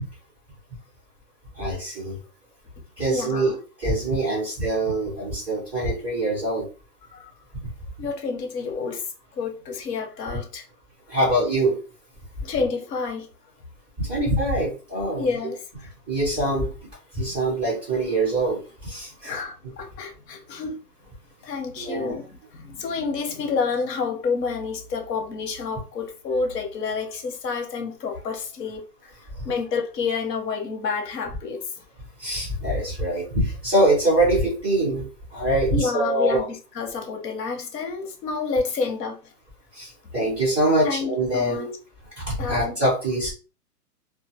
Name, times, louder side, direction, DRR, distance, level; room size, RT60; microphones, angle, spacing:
voice 1, 1.5-2.2 3.0-6.7 11.1-11.8 14.0-15.3 16.1-16.7 17.1-19.4 21.8-22.1 29.3-29.4 32.2-35.0 35.3-36.4 39.7-41.7 42.2-43.3, right 1 dB, 5° right, 0.8 m, -24 dB
voice 2, 3.1-3.6 7.1-7.3 8.0-9.0 9.3-10.7 12.4-13.3 15.2-15.6 19.2-20.8 21.4-31.7 35.7-39.3 40.8-41.7 42.4-42.8, left 4 dB, 85° left, 0.9 m, -29 dB
2.4 x 2.1 x 2.7 m
hypercardioid pair, 165°, 48 cm